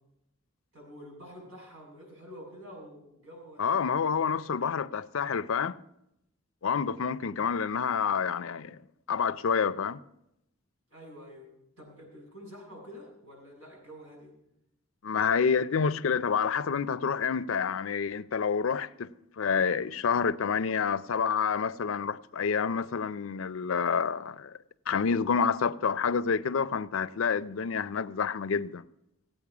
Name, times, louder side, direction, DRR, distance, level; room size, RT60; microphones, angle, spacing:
voice 1, 0.7-3.9 10.9-11.5 11.8-14.3, equal, 80° right, 7.1 m, -48 dB
voice 2, 3.6-5.8 6.6-8.8 9.1-10.0 15.0-19.1 19.4-24.5 24.9-28.8, left 6 dB, 80° left, 0.5 m, -28 dB
16.0 x 8.9 x 6.0 m
head